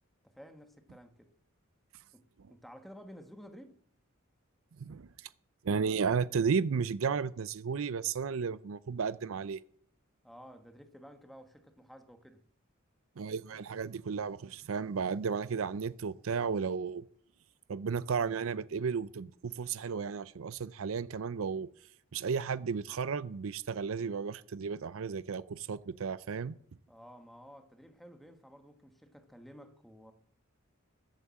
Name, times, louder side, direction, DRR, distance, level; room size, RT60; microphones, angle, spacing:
voice 1, 0.2-1.3 2.1-2.2 2.5-3.8 10.2-12.4 26.9-30.1, equal, ahead, 1.2 m, -53 dB
voice 2, 5.6-9.6 13.2-17.0 17.7-21.7 22.1-26.5, right 6 dB, 70° right, 0.5 m, -33 dB
14.0 x 8.3 x 7.5 m
head